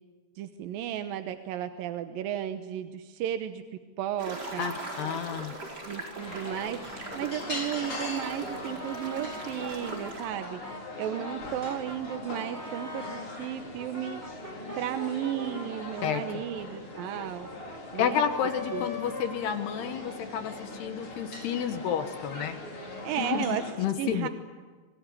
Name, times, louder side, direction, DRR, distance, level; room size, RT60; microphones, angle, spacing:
voice 1, 0.4-3.6 4.0-4.7 5.9-10.6 11.0-14.2 14.8-17.5 17.9-18.2 18.7-18.9 23.0-23.6 24.0-24.3, right 11 dB, 70° right, 8 dB, 2.3 m, -34 dB
sound 1, 4.2-10.3, right 2 dB, 20° right, 4.7 m, -40 dB
voice 2, 4.6-5.5 16.0-16.4 17.9-22.6 23.2-23.4 23.8-24.3, left 8 dB, 70° left, 8 dB, 3.2 m, -30 dB
sound 2, 6.2-23.7, left 2 dB, 30° left, 5.0 m, -41 dB
Brass instrument, 8.1-13.3 13.8-20.1, left 1 dB, 5° right, 3.2 m, -42 dB
26.5 x 21.5 x 9.8 m, 1.4 s
omnidirectional pair, 5.1 m